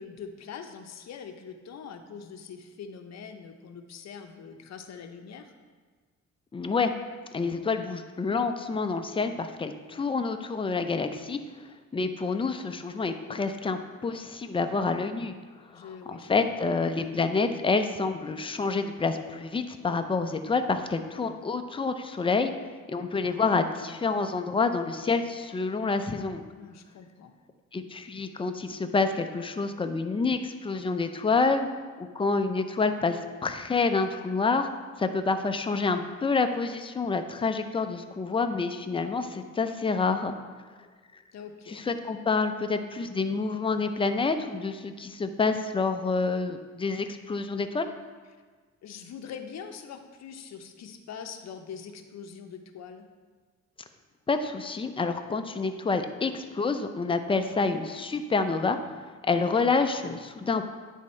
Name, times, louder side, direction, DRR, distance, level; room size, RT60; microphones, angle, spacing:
voice 1, 0.0-5.5 15.7-16.6 26.6-27.3 41.3-41.8 48.8-53.1, left 6 dB, 60° left, 6 dB, 0.7 m, -43 dB
voice 2, 6.5-6.9 7.3-11.4 11.9-15.3 15.7-22.5 22.9-26.4 27.7-31.7 32.0-34.7 35.0-40.3 41.7-47.9 54.3-60.6, left 4 dB, 20° left, 7 dB, 0.5 m, -28 dB
9.5 x 3.6 x 4.3 m, 1.4 s
cardioid pair, 90°, 30 cm